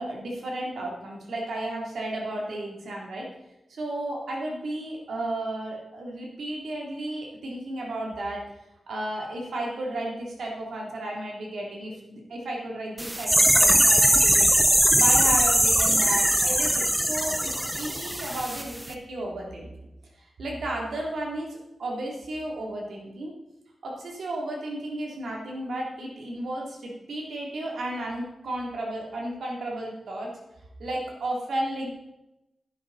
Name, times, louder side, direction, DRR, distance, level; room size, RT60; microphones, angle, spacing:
voice 1, 0.0-3.3 3.7-8.4 8.9-14.6 14.9-19.7 20.4-23.3 23.8-30.3 30.8-31.9, right 1 dB, 80° right, -2 dB, 3.0 m, -33 dB
sound 1, 13.0-18.6 18.9-19.0, right 1 dB, 5° right, 0.8 m, -21 dB
10.5 x 9.6 x 4.1 m, 0.93 s
wide cardioid pair, 125°, 0 cm